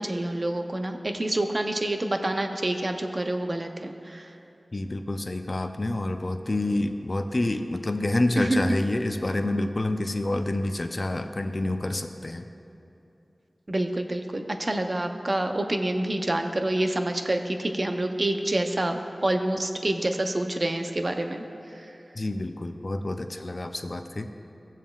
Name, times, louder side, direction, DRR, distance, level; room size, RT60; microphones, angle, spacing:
voice 1, 0.0-4.3 8.4-8.6 10.0-10.1 13.7-21.9, right 1 dB, 45° right, 5 dB, 0.7 m, -27 dB
voice 2, 4.7-12.4 22.2-24.3, left 2 dB, 50° left, 5 dB, 0.5 m, -28 dB
16.0 x 7.2 x 2.4 m, 2.9 s
cardioid pair, 40°, 0 cm